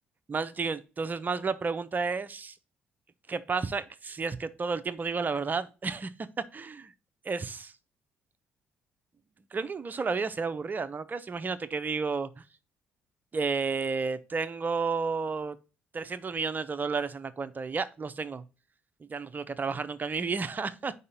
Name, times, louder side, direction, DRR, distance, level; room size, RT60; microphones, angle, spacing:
voice 1, 0.3-2.5 3.3-6.1 6.5-6.9 7.2-7.7 9.5-12.4 13.3-15.5 15.9-18.4 19.1-20.9, right 4 dB, 35° right, 0.8 m, -32 dB
4.9 x 4.1 x 5.3 m
hypercardioid pair, 45°, 5 cm